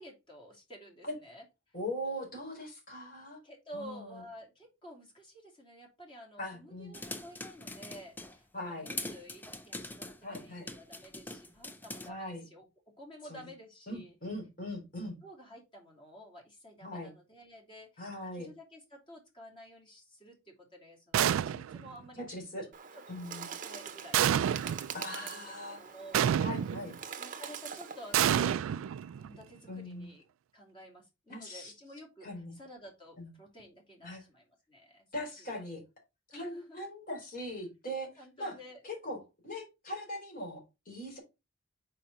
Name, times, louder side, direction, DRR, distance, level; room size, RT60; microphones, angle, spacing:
voice 1, 0.0-1.8 3.4-14.1 15.0-22.2 22.9-23.0 23.3-24.3 25.1-26.4 26.8-26.9 27.2-28.8 29.2-30.3 30.5-35.3 36.3-36.8 38.2-38.8, equal, 25° left, 2.9 m, -52 dB
voice 2, 1.7-3.4 3.7-4.2 6.4-6.9 8.5-8.9 10.2-10.7 12.1-12.4 13.3-13.4 13.9-15.2 16.8-17.1 18.0-18.5 22.2-22.7 23.1-23.5 24.9-25.8 26.4-26.9 29.7-30.1 31.3-31.7 32.2-32.6 33.2-33.3 34.0-34.2 35.1-35.8 36.3-38.1 38.4-38.6 38.8-39.2 39.4-41.2, left 1 dB, 45° left, 4.1 m, -40 dB
sound 1, 6.9-8.4 8.8-12.1, left 2 dB, 10° left, 0.5 m, -42 dB
sound 2, 21.1-21.9 24.1-24.9 26.1-26.9 28.1-29.4, right 9 dB, 90° right, 0.3 m, -28 dB
Bird, 22.7-28.3, right 7 dB, 40° right, 0.8 m, -44 dB
5.8 x 4.9 x 5.3 m
head